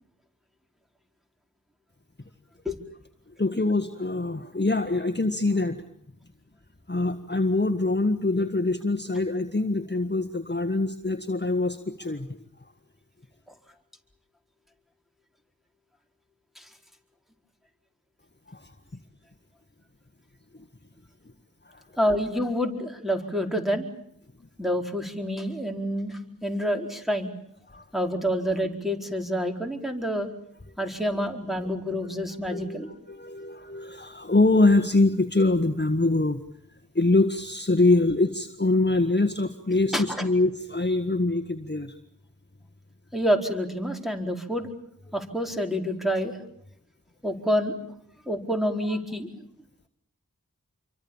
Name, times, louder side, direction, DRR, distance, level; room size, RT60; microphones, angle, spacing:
voice 1, 3.4-5.8 6.9-12.3 18.5-18.7 21.6-21.8 27.7-27.9 32.5-36.4 36.9-42.0, left 2 dB, 30° left, 7 dB, 1.6 m, -24 dB
voice 2, 22.0-23.8 24.6-27.3 27.9-30.3 30.8-32.9 39.9-40.2 43.1-44.7 45.1-46.4 47.2-47.7 48.3-49.3, equal, ahead, 2 dB, 4.5 m, -28 dB
27.5 x 24.0 x 7.3 m, 0.71 s
wide cardioid pair, 45°, 33 cm